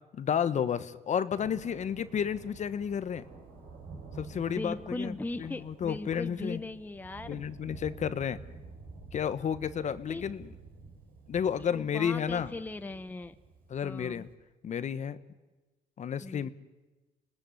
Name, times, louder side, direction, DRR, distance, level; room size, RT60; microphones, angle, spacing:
voice 1, 0.1-3.2 4.2-6.6 7.3-8.4 9.1-10.5 11.3-12.5 13.7-14.3 14.6-15.2 16.0-16.5, left 8 dB, 45° left, 14 dB, 1.2 m, -31 dB
Thunder, 1.3-14.3, right 4 dB, 60° right, 6.5 m, -50 dB
voice 2, 4.5-7.4 10.1-10.2 11.7-13.3 13.8-14.3 16.2-16.5, left 2 dB, 10° left, 10 dB, 1.0 m, -39 dB
27.0 x 19.0 x 9.8 m, 1.2 s
cardioid pair, 110°, 17 cm